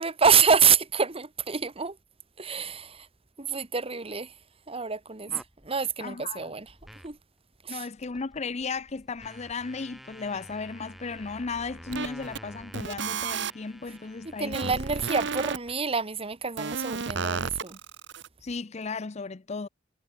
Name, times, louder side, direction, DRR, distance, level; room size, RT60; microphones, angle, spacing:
voice 1, 0.0-2.0 2.4-3.1 3.4-4.3 4.7-5.3 5.6-6.7 7.0-7.2 7.6-7.8 14.4-17.8, right 6 dB, 30° right, 1.6 m, -26 dB
sound 1, 5.3-5.7 6.6-7.2 7.6-7.7 8.0-15.7, equal, ahead, 4.1 m, -49 dB
voice 2, 6.0-6.5 7.7-14.7 18.4-19.7, left 4 dB, 35° left, 0.6 m, -35 dB
sound 2, 11.9-12.4 12.7-13.5 14.5-15.6 16.6-18.3, right 5 dB, 65° right, 1.3 m, -32 dB
head